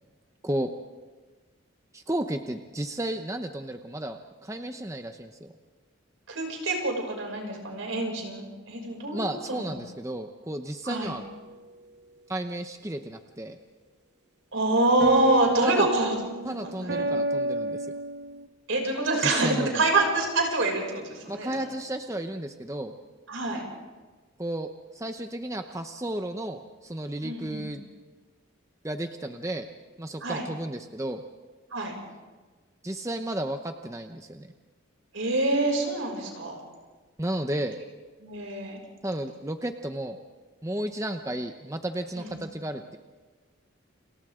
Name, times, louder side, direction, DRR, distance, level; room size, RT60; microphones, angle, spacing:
voice 1, 1.9-5.5 9.1-11.2 12.3-13.6 15.6-15.9 16.4-17.9 19.2-19.8 21.3-22.9 24.4-27.8 28.8-29.7 30.0-31.2 32.8-34.5 37.2-37.8 39.0-40.2 40.6-43.0, right 1 dB, 15° right, 6 dB, 0.8 m, -33 dB
voice 2, 6.3-9.7 10.8-11.1 14.5-16.2 16.6-17.1 18.7-21.6 23.3-23.6 27.2-27.7 30.2-30.4 31.7-31.9 35.1-36.6 38.2-38.8 42.2-42.4, right 2 dB, 75° right, 1 dB, 6.4 m, -26 dB
relaxing piano, 10.9-11.3 15.0-18.5, right 1 dB, 55° right, 1.0 m, -30 dB
29.5 x 29.0 x 3.8 m, 1.3 s
head